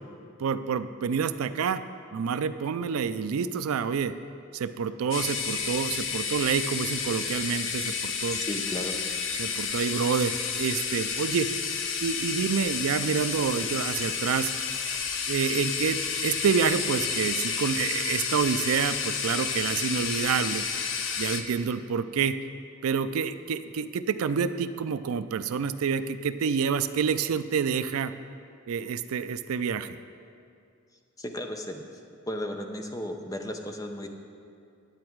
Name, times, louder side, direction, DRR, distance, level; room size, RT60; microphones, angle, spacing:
voice 1, 0.4-1.8 2.1-4.1 4.5-8.4 9.4-11.5 12.0-14.5 15.3-20.7 21.2-22.3 22.8-28.1 28.7-30.0, right 6 dB, 80° right, 12 dB, 0.4 m, -28 dB
sound 1, 5.1-21.4, left 6 dB, 60° left, 0.7 m, -31 dB
voice 2, 8.4-9.0 31.2-31.8 32.3-34.1, left 1 dB, 15° left, 4 dB, 0.6 m, -34 dB
10.5 x 8.7 x 4.6 m, 2.4 s
head